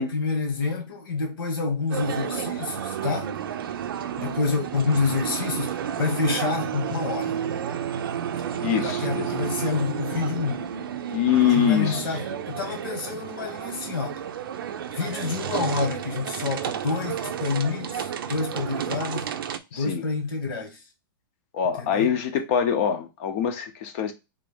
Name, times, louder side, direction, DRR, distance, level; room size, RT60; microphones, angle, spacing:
voice 1, 0.0-3.3 4.2-7.3 8.8-10.7 11.4-14.2 14.9-19.3 19.7-20.8 21.8-22.1, left 4 dB, 80° left, 1.5 m, -28 dB
sound 1, 1.9-19.6, right 9 dB, 85° right, 0.5 m, -31 dB
voice 2, 8.6-9.4 11.1-12.1 19.7-20.0 21.5-24.1, left 8 dB, 35° left, 0.6 m, -24 dB
3.5 x 2.5 x 3.4 m
supercardioid pair, 170°, 12 cm